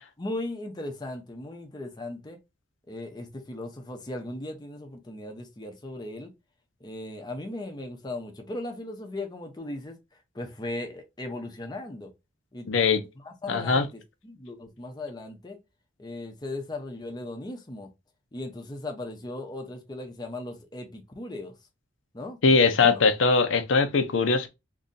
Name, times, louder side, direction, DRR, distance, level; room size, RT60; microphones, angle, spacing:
voice 1, 0.2-2.4 2.9-6.3 6.8-9.9 10.3-12.1 12.5-12.7 13.2-15.6 16.0-17.9 18.3-21.5 22.1-23.0, left 2 dB, 20° left, 0.6 m, -37 dB
voice 2, 12.7-13.0 13.5-13.8 22.4-24.5, left 4 dB, 80° left, 0.5 m, -21 dB
2.6 x 2.6 x 3.8 m
head